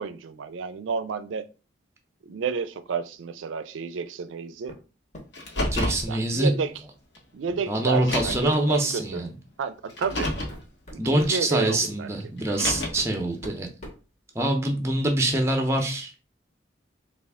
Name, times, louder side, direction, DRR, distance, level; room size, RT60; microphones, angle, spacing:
voice 1, 0.0-1.5 2.2-4.8 6.1-6.7 7.3-9.2 9.6-10.3 11.1-12.1, right 5 dB, 85° right, 11 dB, 0.4 m, -31 dB
sound 1, 4.7-4.9 5.1-5.9 7.5-7.6 8.1-8.2 8.7-8.9 9.7-9.8 10.3-11.4 12.5-12.6 13.0-14.7, left 1 dB, 40° left, 0.9 m, -44 dB
Car, 5.3-6.1 7.2-7.3 8.0-8.6 9.9-10.6 12.4-13.1, left 1 dB, 70° left, 0.9 m, -29 dB
voice 2, 5.7-6.5 7.7-9.3 11.0-13.7 14.3-16.2, right 1 dB, 15° right, 4 dB, 0.5 m, -25 dB
3.4 x 2.4 x 3.4 m, 0.34 s
head